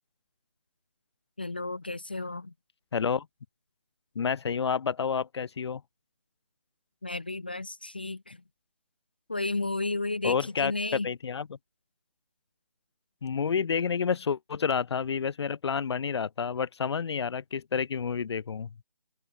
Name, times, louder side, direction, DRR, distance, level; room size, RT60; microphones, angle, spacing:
voice 1, 1.4-2.5 7.0-8.4 9.3-11.1, left 2 dB, 15° left, 0.4 m, -33 dB
voice 2, 2.9-3.3 4.2-5.8 10.2-10.7 11.0-11.5 13.2-18.7, left 6 dB, 40° left, 3.5 m, -29 dB
open air
figure-of-eight pair, 160°, 20 cm